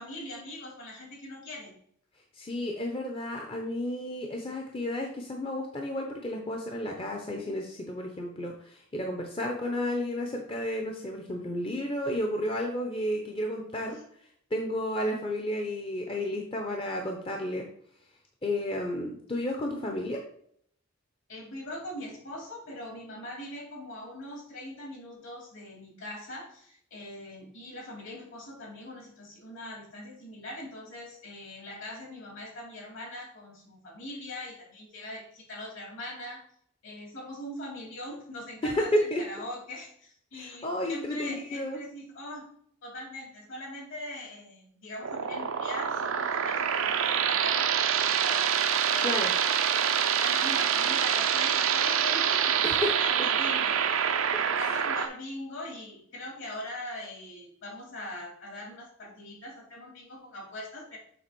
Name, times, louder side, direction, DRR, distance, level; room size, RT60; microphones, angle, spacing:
voice 1, 0.0-1.7 21.3-36.4 36.8-42.5 42.8-49.1 49.7-49.9 50.2-53.8 54.3-61.0, left 1 dB, 65° left, -2 dB, 3.4 m, -41 dB
voice 2, 2.3-14.0 14.5-17.6 18.4-20.2 38.6-39.2 40.3-41.8 49.0-49.3 52.6-52.9 54.5-54.8, left 1 dB, 25° left, 2 dB, 0.8 m, -32 dB
sound 1, 45.0-55.1, right 8 dB, 75° right, 0.6 m, -26 dB
7.2 x 3.4 x 6.1 m, 0.65 s
head